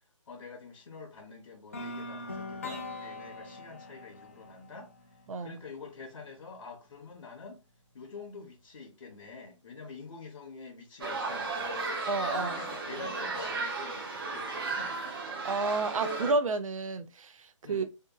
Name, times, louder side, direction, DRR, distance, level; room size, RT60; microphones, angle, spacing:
voice 1, 0.3-4.9 5.4-7.6 7.9-11.9 12.3-15.0 17.6-17.9, left 4 dB, 65° left, 0.7 m, -47 dB
sound 1, 1.7-5.7, left 2 dB, 25° left, 0.4 m, -42 dB
sound 2, 11.0-16.3, right 3 dB, 45° right, 0.7 m, -34 dB
voice 2, 12.1-12.6 15.4-17.9, right 3 dB, 80° right, 0.4 m, -31 dB
2.7 x 2.3 x 2.2 m
hypercardioid pair, 175°, 17 cm